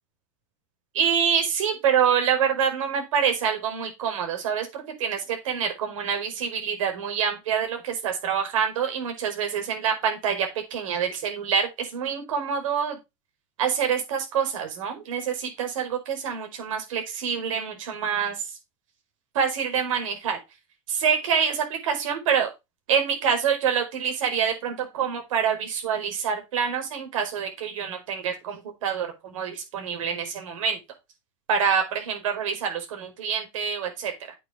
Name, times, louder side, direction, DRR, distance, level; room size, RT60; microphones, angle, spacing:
voice 1, 0.9-13.0 13.6-18.4 19.3-20.4 20.9-22.5 22.9-30.8 31.5-34.1, right 7 dB, 80° right, 4 dB, 4.9 m, -26 dB
8.7 x 6.6 x 5.4 m, 0.24 s
supercardioid pair, 145°, 17 cm